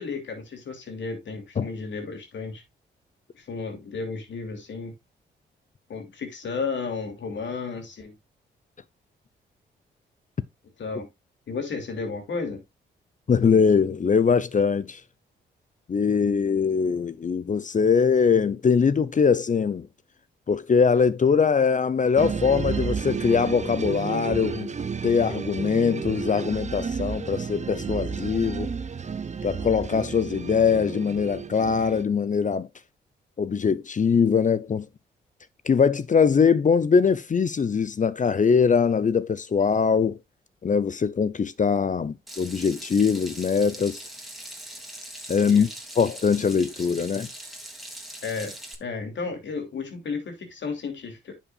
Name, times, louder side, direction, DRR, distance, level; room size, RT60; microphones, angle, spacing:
voice 1, 0.0-2.6 3.3-4.9 5.9-8.1 10.8-11.1 11.5-12.6 45.5-45.7 48.2-48.5 48.8-51.3, left 4 dB, 65° left, 3.0 m, -33 dB
voice 2, 13.3-15.0 15.9-19.9 20.5-24.7 25.0-28.7 29.4-32.7 33.4-34.9 35.7-40.2 40.6-44.0 45.3-45.7 46.0-47.3, left 6 dB, 40° left, 0.7 m, -22 dB
sound 1, 22.2-32.0, right 5 dB, 35° right, 0.9 m, -32 dB
Water tap faucet / Sink (filling or washing), 42.3-48.7, right 1 dB, ahead, 2.9 m, -41 dB
9.7 x 7.3 x 2.4 m
supercardioid pair, 50°, 21 cm